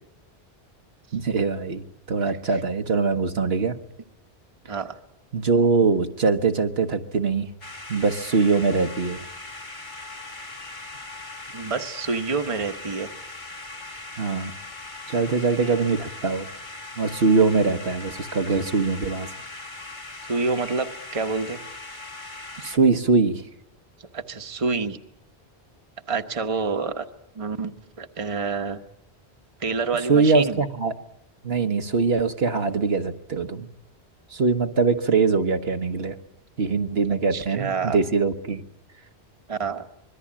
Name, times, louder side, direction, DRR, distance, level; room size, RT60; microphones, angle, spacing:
voice 1, 1.1-3.8 5.3-7.5 7.9-9.2 14.2-14.5 15.1-16.5 17.0-19.3 22.6-23.4 30.1-30.9 31.4-33.7 34.3-36.2 36.6-38.6, right 4 dB, 65° right, 6 dB, 1.5 m, -22 dB
sound 1, 7.6-22.8, left 2 dB, 45° left, 1.9 m, -39 dB
voice 2, 11.5-13.1 20.3-21.6 24.0-25.0 26.1-27.0 27.3-28.8 29.6-30.6 37.3-38.0 39.5-39.8, right 4 dB, 30° right, 7 dB, 1.2 m, -28 dB
25.5 x 22.0 x 8.7 m, 0.79 s
omnidirectional pair, 1.1 m